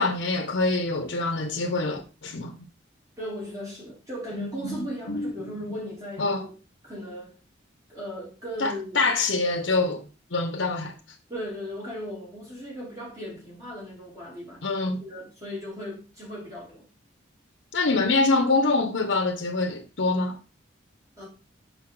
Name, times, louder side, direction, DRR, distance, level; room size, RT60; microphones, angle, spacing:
voice 1, 0.0-2.6 4.3-4.8 5.1-5.5 6.2-6.4 8.6-10.0 10.3-10.9 14.6-15.0 17.7-20.4, left 3 dB, 65° left, 0.8 m, -25 dB
voice 2, 3.2-6.6 6.8-7.4 7.9-9.0 11.3-14.6 15.0-16.9 21.2-21.3, equal, 20° right, 3.1 m, -37 dB
6.2 x 5.3 x 3.8 m
head